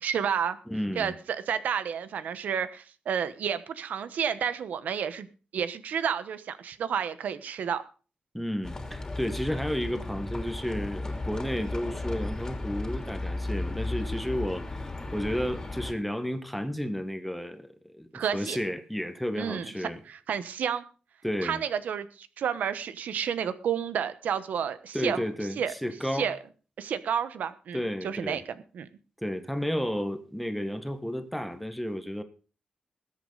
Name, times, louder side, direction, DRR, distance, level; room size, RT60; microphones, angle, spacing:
voice 1, 0.0-0.6 0.9-5.3 5.5-7.8 18.1-18.6 19.4-19.7 20.1-20.8 21.4-25.2 25.6-25.7 26.1-26.4 26.8-28.4 28.7-28.9, right 8 dB, 75° right, 1.1 m, -30 dB
voice 2, 0.7-1.1 8.3-20.0 21.2-21.6 24.9-26.3 27.7-28.4 29.2-32.2, equal, ahead, 1.4 m, -32 dB
Livestock farm animals working animals, 8.6-15.9, left 2 dB, 20° left, 2.9 m, -35 dB
20.5 x 8.4 x 4.0 m
wide cardioid pair, 125°, 3 cm